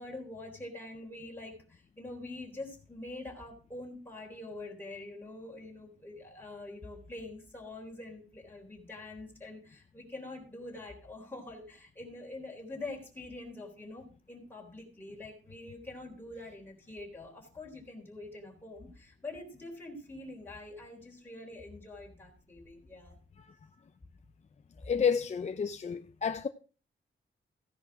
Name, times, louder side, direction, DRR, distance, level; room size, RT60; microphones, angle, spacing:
voice 1, 0.0-23.2, left 2 dB, 10° left, 3.7 m, -45 dB
voice 2, 24.9-26.5, left 6 dB, 35° left, 0.5 m, -30 dB
15.5 x 10.5 x 3.5 m
wide cardioid pair, 180°, 20 cm